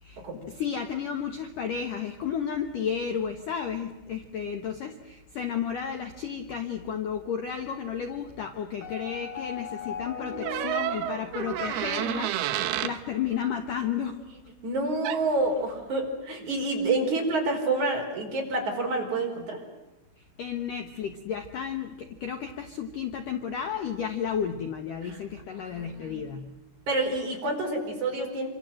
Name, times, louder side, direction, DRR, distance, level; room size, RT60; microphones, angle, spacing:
voice 1, 0.0-14.2 20.2-26.5, left 7 dB, 80° left, 6 dB, 1.9 m, -33 dB
sound 1, 8.8-13.1, left 4 dB, 35° left, 3.3 m, -39 dB
sound 2, 10.4-13.0 15.0-15.3, right 13 dB, 80° right, 2.3 m, -30 dB
voice 2, 14.6-19.6 25.0-25.2 25.6-26.2 26.9-28.5, right 2 dB, 35° right, 1 dB, 5.8 m, -28 dB
27.5 x 25.0 x 7.7 m, 0.98 s
omnidirectional pair, 5.9 m